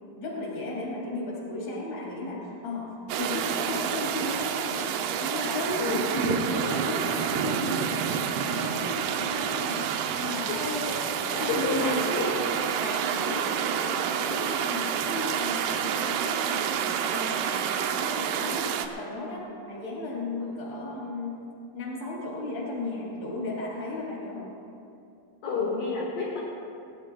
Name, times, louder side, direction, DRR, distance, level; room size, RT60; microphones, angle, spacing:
voice 1, 0.0-4.9 5.2-9.8 10.2-12.1 12.8-21.5 21.7-24.5, left 2 dB, 40° left, -4 dB, 4.0 m, -34 dB
sound 1, 3.1-18.9, right 8 dB, 80° right, 2.7 m, -29 dB
voice 2, 10.5-11.0 11.3-12.4 25.4-26.4, left 4 dB, 60° left, -5 dB, 3.2 m, -30 dB
22.0 x 17.5 x 2.3 m, 2.6 s
omnidirectional pair, 4.8 m